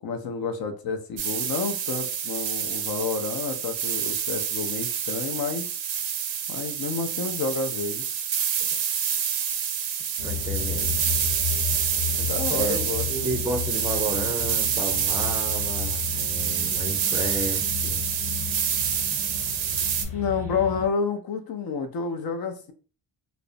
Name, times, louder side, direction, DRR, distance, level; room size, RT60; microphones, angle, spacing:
voice 1, 0.0-5.7 6.5-8.0 12.2-13.2 20.1-22.7, left 5 dB, 55° left, 0.5 m, -29 dB
sound 1, 1.2-20.0, right 8 dB, 80° right, 0.6 m, -27 dB
sound 2, 10.2-20.9, left 8 dB, 85° left, 1.0 m, -34 dB
voice 2, 10.2-11.0 12.6-12.8 13.1-18.0, right 1 dB, 10° right, 0.4 m, -32 dB
2.5 x 2.0 x 2.5 m
cardioid pair, 95°, 45 cm